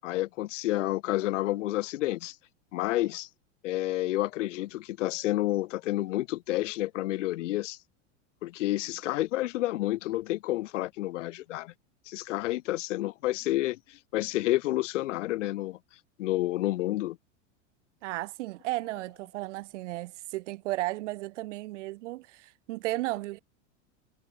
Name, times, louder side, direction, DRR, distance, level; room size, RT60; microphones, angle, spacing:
voice 1, 0.0-2.3 2.7-3.3 3.6-7.8 8.4-11.7 12.1-15.8 16.2-17.2, left 16 dB, 75° left, 2.8 m, -30 dB
voice 2, 18.0-23.4, right 18 dB, 70° right, 7.6 m, -34 dB
hypercardioid pair, 115°, 37 cm